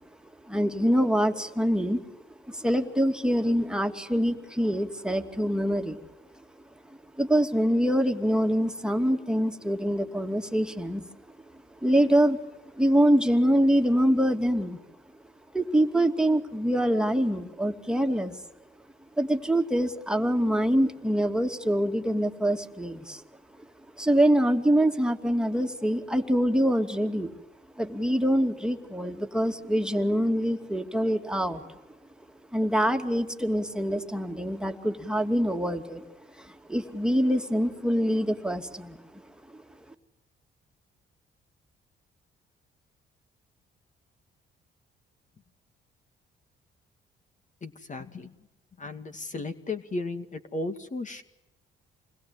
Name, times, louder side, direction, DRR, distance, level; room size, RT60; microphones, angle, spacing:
voice 1, 0.5-2.0 2.5-6.0 7.2-11.0 11.8-12.4 12.7-14.8 15.5-18.4 19.2-23.2 24.0-27.3 27.8-31.8 32.5-36.0 36.4-39.0, equal, 5° right, 4 dB, 2.7 m, -25 dB
voice 2, 47.6-48.4 48.8-51.2, left 2 dB, 40° left, 8 dB, 2.2 m, -35 dB
28.0 x 21.0 x 9.8 m, 0.98 s
cardioid pair, 90°, 20 cm